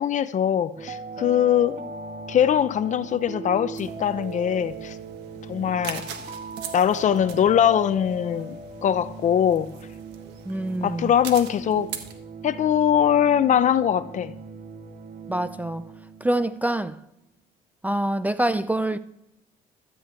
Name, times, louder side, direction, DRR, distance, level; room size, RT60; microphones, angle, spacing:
voice 1, 0.0-1.8 2.3-5.0 5.5-6.0 6.7-8.5 8.8-9.7 10.8-11.9 12.4-14.3, left 9 dB, 45° left, 0.7 m, -22 dB
sound 1, 0.8-16.5, right 3 dB, 45° right, 1.7 m, -39 dB
sound 2, 3.7-12.1, right 8 dB, 90° right, 1.4 m, -42 dB
voice 2, 10.5-11.1 15.3-15.8 16.2-16.9 17.8-19.0, right 1 dB, 10° right, 0.4 m, -25 dB
13.0 x 6.1 x 8.3 m
cardioid pair, 110°, 17 cm